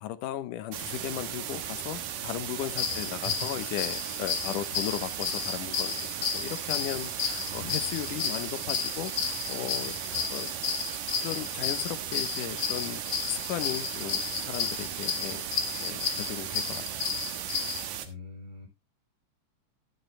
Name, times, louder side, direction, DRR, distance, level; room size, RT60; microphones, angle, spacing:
voice 1, 0.0-10.5 11.2-17.1, left 13 dB, 80° left, 14 dB, 2.4 m, -36 dB
sound 1, 0.7-18.1, right 10 dB, 80° right, 2.8 m, -36 dB
sound 2, 2.7-17.8, left 7 dB, 55° left, 2.2 m, -33 dB
voice 2, 2.9-3.5 7.5-8.1 10.1-10.2 18.0-18.7, left 3 dB, 15° right, 0 dB, 5.2 m, -43 dB
11.5 x 10.0 x 3.3 m, 0.25 s
omnidirectional pair, 3.7 m